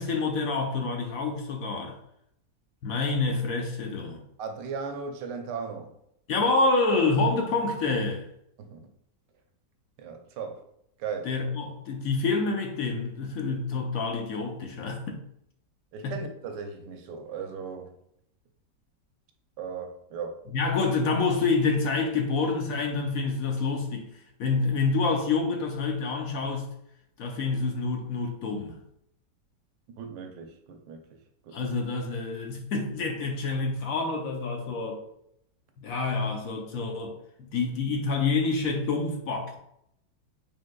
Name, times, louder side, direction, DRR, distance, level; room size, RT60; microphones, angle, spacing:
voice 1, 0.0-1.9 2.8-4.2 6.3-8.3 11.2-15.2 16.0-16.1 20.5-24.1 24.4-26.7 27.2-28.8 31.5-35.0 35.8-37.2 37.5-39.6, left 3 dB, 65° left, 2 dB, 1.0 m, -27 dB
voice 2, 4.4-5.9 8.6-8.8 10.0-10.6 11.0-11.3 15.9-17.9 19.6-20.4 30.0-31.2 31.4-31.7, right 5 dB, 80° right, 5 dB, 1.3 m, -37 dB
5.1 x 3.7 x 2.2 m, 0.75 s
omnidirectional pair, 1.9 m